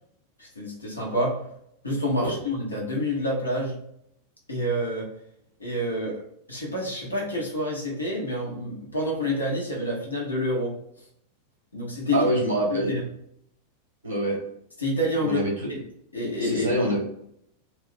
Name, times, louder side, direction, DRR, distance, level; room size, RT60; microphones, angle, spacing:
voice 1, 0.4-1.5 1.8-3.8 4.5-5.1 5.6-6.2 6.5-10.7 11.7-12.3 12.7-13.0 14.8-15.4 15.7-15.8 16.1-16.7, left 1 dB, 80° left, -2 dB, 0.8 m, -28 dB
voice 2, 12.1-12.9 14.0-14.4 15.2-15.7 16.4-17.0, right 1 dB, 75° right, -2 dB, 0.8 m, -25 dB
2.3 x 2.3 x 3.6 m, 0.72 s
figure-of-eight pair, 90°, 0 cm